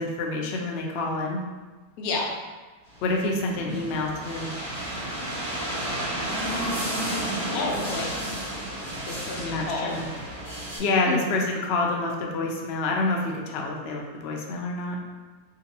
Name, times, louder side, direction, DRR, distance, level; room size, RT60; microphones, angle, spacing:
voice 1, 0.0-1.4 3.0-4.5 9.4-10.1 10.8-15.0, left 2 dB, 85° left, -1 dB, 0.5 m, -27 dB
voice 2, 2.0-2.4 7.5-8.1 9.1-9.9 11.1-11.4, left 3 dB, 70° left, -1 dB, 1.0 m, -30 dB
sound 1, 2.9-10.8, right 1 dB, 80° right, 1.8 m, -32 dB
3.8 x 2.5 x 2.8 m, 1.3 s
omnidirectional pair, 1.7 m